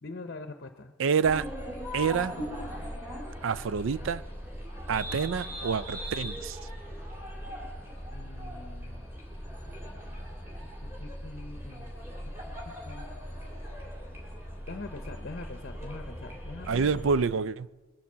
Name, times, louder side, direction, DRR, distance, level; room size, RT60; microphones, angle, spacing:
voice 1, 0.0-0.9 8.1-9.1 11.0-12.0 12.7-13.1 14.7-16.9, left 3 dB, 45° left, 7 dB, 0.8 m, -43 dB
voice 2, 1.0-1.5 1.9-2.4 3.4-4.2 4.9-6.6 16.7-17.7, right 5 dB, 60° right, 18 dB, 0.4 m, -27 dB
sound 1, 1.2-17.2, equal, 10° right, 2.8 m, -39 dB
21.0 x 7.1 x 7.3 m, 1.3 s
head